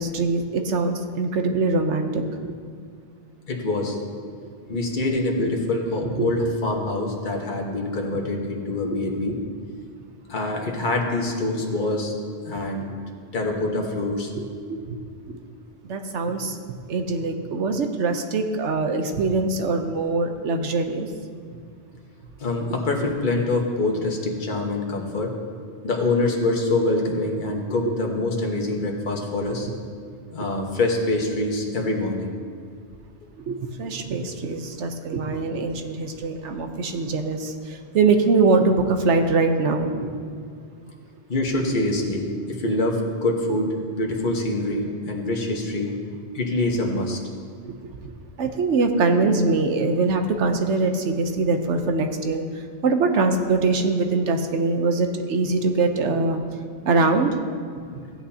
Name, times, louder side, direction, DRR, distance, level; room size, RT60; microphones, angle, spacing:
voice 1, 0.0-2.2 2.5-2.6 4.4-4.5 6.1-6.3 9.0-9.4 14.4-14.5 14.7-15.0 15.3-15.4 15.8-16.6 16.9-21.1 33.4-40.1 48.4-56.4 56.8-57.3 57.9-58.0, right 3 dB, 90° right, 6 dB, 1.2 m, -23 dB
voice 2, 3.5-4.0 4.7-9.4 10.3-12.1 12.4-12.9 13.3-14.3 22.4-25.3 25.8-29.7 30.3-32.3 41.3-45.9 46.3-47.2, left 2 dB, 45° left, 0 dB, 1.4 m, -25 dB
15.5 x 8.7 x 2.8 m, 2.2 s
omnidirectional pair, 1.2 m